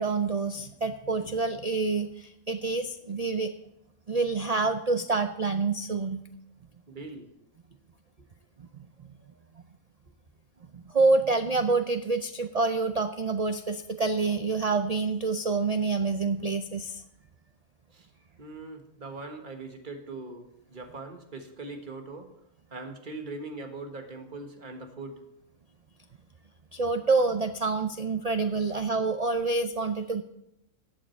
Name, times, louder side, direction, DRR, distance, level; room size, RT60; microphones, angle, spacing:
voice 1, 0.0-3.5 4.1-6.2 8.6-8.7 9.0-9.1 10.7-17.0 26.7-30.2, right 3 dB, 85° right, 8 dB, 0.3 m, -27 dB
voice 2, 6.9-7.3 8.2-8.3 9.3-9.4 17.9-18.1 18.4-22.3 22.7-25.2, right 3 dB, 35° right, 4 dB, 1.5 m, -41 dB
15.0 x 8.7 x 4.5 m, 0.82 s
omnidirectional pair, 1.5 m